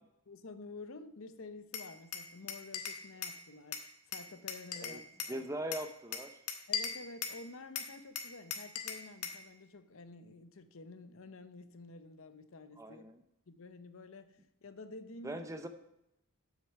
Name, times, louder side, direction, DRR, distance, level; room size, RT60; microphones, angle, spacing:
voice 1, 0.3-5.4 6.7-13.1 13.5-15.5, left 3 dB, 60° left, 11 dB, 0.8 m, -50 dB
Glass, 1.7-3.4 3.7-5.4 5.7-7.4 7.8-9.4, left 7 dB, 90° left, 1.3 m, -39 dB
voice 2, 5.3-6.4 12.8-13.2 15.2-15.7, right 1 dB, 15° right, 8 dB, 0.7 m, -40 dB
7.9 x 6.7 x 6.6 m, 0.86 s
head